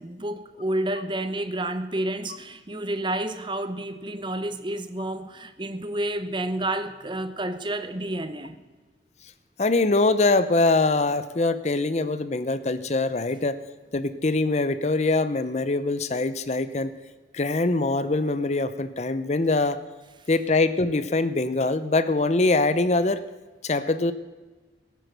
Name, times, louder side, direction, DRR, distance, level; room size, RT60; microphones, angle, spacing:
voice 1, 0.0-8.6, right 1 dB, 25° right, 11 dB, 0.8 m, -30 dB
voice 2, 9.6-13.6 13.9-16.9 17.3-19.8 20.3-23.2 23.6-24.1, left 2 dB, 40° left, 12 dB, 0.7 m, -23 dB
18.0 x 9.3 x 6.8 m, 1.3 s
head